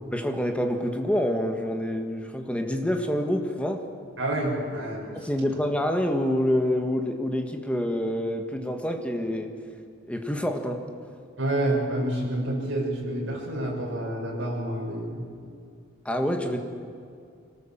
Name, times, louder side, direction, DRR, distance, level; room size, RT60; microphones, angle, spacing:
voice 1, 0.1-3.8 5.1-9.5 10.1-10.8 16.0-16.6, equal, 5° left, 4 dB, 1.6 m, -27 dB
voice 2, 4.2-5.1 5.5-5.6 11.4-15.2, right 1 dB, 65° right, -3 dB, 7.1 m, -28 dB
25.0 x 18.5 x 7.4 m, 2.3 s
head